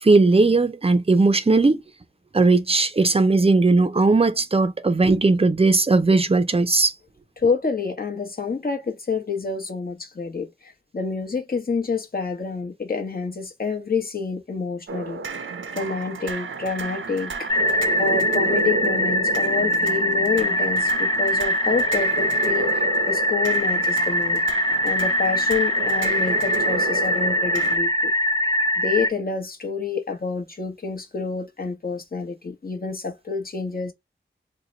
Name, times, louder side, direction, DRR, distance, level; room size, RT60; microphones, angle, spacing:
voice 1, 0.0-1.8 2.3-6.9, right 3 dB, 30° right, 0.5 m, -18 dB
voice 2, 7.4-15.2 15.7-17.5 18.0-24.4 24.8-28.1 28.8-33.9, left 5 dB, 45° left, 1.0 m, -28 dB
sound 1, 14.9-27.8, right 4 dB, 80° right, 0.6 m, -31 dB
sound 2, 17.5-29.1, left 1 dB, 20° left, 0.5 m, -22 dB
2.8 x 2.1 x 3.8 m
wide cardioid pair, 55°, 20 cm